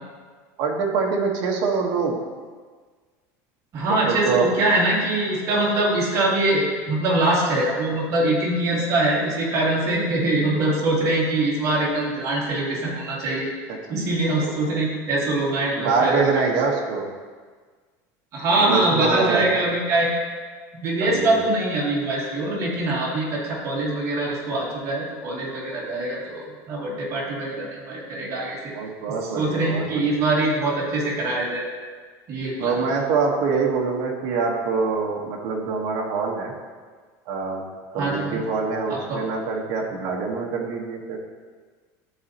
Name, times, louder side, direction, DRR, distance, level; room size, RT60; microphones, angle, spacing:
voice 1, 0.6-2.1 4.1-4.5 14.3-14.5 15.7-17.1 18.6-19.4 21.0-21.4 28.7-30.0 32.6-36.5 37.3-37.6 37.9-41.2, right 5 dB, 55° right, -1 dB, 1.2 m, -24 dB
voice 2, 3.7-13.5 13.9-16.3 18.3-20.1 20.8-28.6 29.2-31.7 32.3-32.8 38.0-38.4 38.9-39.2, right 2 dB, 35° right, -6 dB, 2.2 m, -23 dB
12.0 x 4.1 x 2.8 m, 1.5 s
cardioid pair, 155°, 9 cm